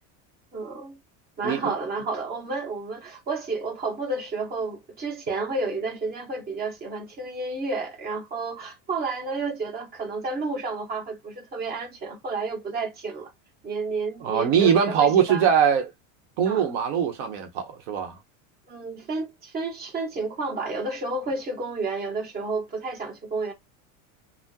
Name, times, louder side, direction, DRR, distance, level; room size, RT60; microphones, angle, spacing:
voice 1, 0.5-1.0 1.4-13.3 13.6-15.5 16.4-16.7 18.7-23.5, right 3 dB, 25° right, 1.2 m, -31 dB
voice 2, 14.2-15.9 16.4-18.2, right 8 dB, 65° right, 1.0 m, -22 dB
3.5 x 2.1 x 2.8 m
supercardioid pair, 135°, 39 cm